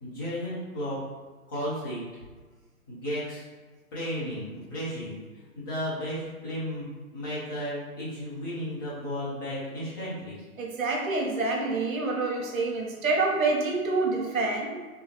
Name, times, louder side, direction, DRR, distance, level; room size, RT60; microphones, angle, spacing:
voice 1, 0.0-1.0 1.5-2.0 2.9-3.5 3.9-10.4, equal, 15° left, -11 dB, 0.6 m, -34 dB
voice 2, 10.6-14.8, right 3 dB, 60° right, -1 dB, 1.0 m, -27 dB
3.3 x 2.7 x 3.2 m, 1.3 s
figure-of-eight pair, 130°, 45 cm